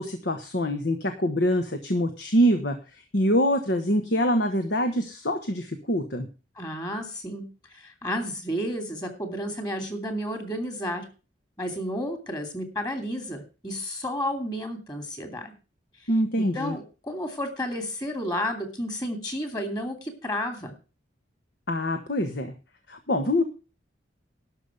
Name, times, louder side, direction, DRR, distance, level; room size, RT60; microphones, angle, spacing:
voice 1, 0.0-2.8 3.1-6.3 16.1-16.7 21.7-22.5 22.9-23.4, equal, 60° left, 7 dB, 1.3 m, -24 dB
voice 2, 6.6-11.1 11.6-15.5 16.0-16.1 16.4-20.7, equal, 20° left, 6 dB, 2.5 m, -32 dB
12.0 x 5.5 x 8.2 m, 0.34 s
head